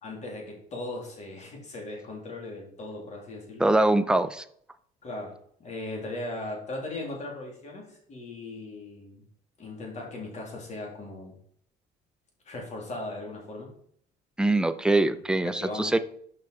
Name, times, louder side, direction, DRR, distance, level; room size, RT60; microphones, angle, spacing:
voice 1, 0.0-3.7 5.0-9.2 9.6-11.4 12.4-13.7 15.4-15.9, left 2 dB, 45° left, 0 dB, 3.0 m, -38 dB
voice 2, 3.6-4.4 14.4-16.0, right 2 dB, 5° right, 10 dB, 0.5 m, -23 dB
6.7 x 5.5 x 4.8 m, 0.64 s
cardioid pair, 110°, 17 cm